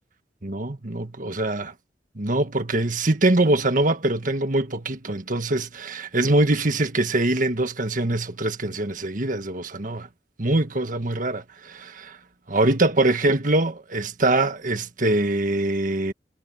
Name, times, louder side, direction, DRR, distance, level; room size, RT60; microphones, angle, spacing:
voice 1, 0.4-1.7 2.2-10.1 10.4-12.2 12.5-16.1, right 2 dB, 50° right, 1.7 m, -23 dB
head